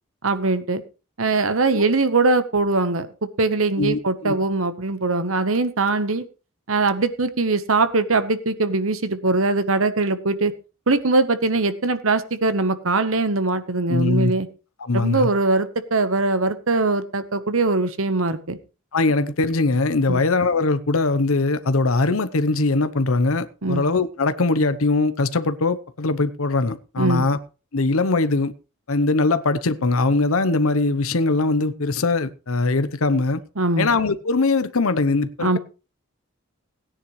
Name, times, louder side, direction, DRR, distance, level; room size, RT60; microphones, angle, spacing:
voice 1, 0.2-0.8 1.2-6.2 6.7-10.5 10.9-14.5 14.9-18.6 20.1-20.2 23.6-23.8 27.0-27.3 33.6-33.9 35.4-35.6, right 3 dB, 65° right, 1.1 m, -21 dB
voice 2, 3.8-4.3 13.9-14.3 14.8-15.3 18.9-27.4 27.7-28.5 28.9-33.4 33.8-35.6, left 3 dB, 70° left, 0.8 m, -21 dB
17.0 x 10.0 x 3.2 m
head